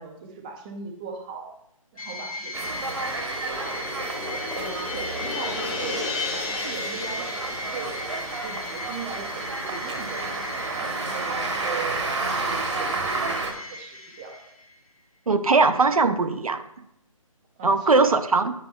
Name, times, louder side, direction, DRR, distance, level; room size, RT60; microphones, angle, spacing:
voice 1, 0.0-1.6 1.9-3.8 4.5-6.1 6.6-10.7 11.0-14.4 17.6-18.1, right 5 dB, 15° right, 3 dB, 0.5 m, -39 dB
sound 1, 2.0-14.8, left 2 dB, 85° left, 1.1 m, -37 dB
sound 2, 2.5-13.5, right 3 dB, 60° right, 1.0 m, -31 dB
sound 3, 3.2-9.7, left 3 dB, 5° left, 0.9 m, -35 dB
voice 2, 15.3-16.6 17.6-18.5, right 3 dB, 85° right, 9 dB, 0.6 m, -20 dB
9.6 x 5.0 x 2.2 m, 0.77 s
figure-of-eight pair, 150°, 18 cm